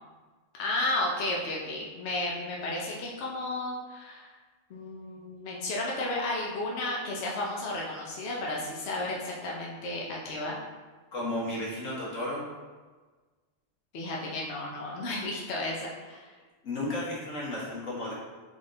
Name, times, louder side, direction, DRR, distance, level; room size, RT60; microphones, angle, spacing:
voice 1, 0.6-4.3 4.7-10.6 13.9-16.3, left 2 dB, 60° left, -3 dB, 0.9 m, -33 dB
voice 2, 11.1-12.5 16.6-18.1, left 1 dB, 80° left, -5 dB, 1.6 m, -33 dB
3.9 x 3.5 x 3.7 m, 1.3 s
omnidirectional pair, 1.3 m